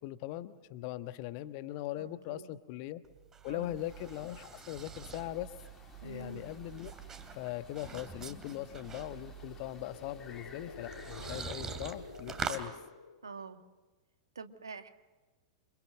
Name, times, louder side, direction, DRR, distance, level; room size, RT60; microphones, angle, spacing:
voice 1, 0.0-3.0 3.4-5.5 6.0-6.9 7.3-12.7, left 14 dB, 45° left, 12 dB, 1.3 m, -40 dB
voice 2, 1.9-2.5 3.5-3.8 6.0-6.5 13.2-13.6 14.4-14.9, right 4 dB, 75° right, 8 dB, 1.9 m, -46 dB
sound 1, 3.0-12.7, right 6 dB, 20° right, 2.8 m, -45 dB
sound 2, 3.8-11.5, left 6 dB, 25° left, 2.4 m, -56 dB
sound 3, 9.4-13.6, left 5 dB, 75° left, 2.7 m, -51 dB
29.0 x 26.0 x 6.6 m, 1.2 s
figure-of-eight pair, 95°, 2 cm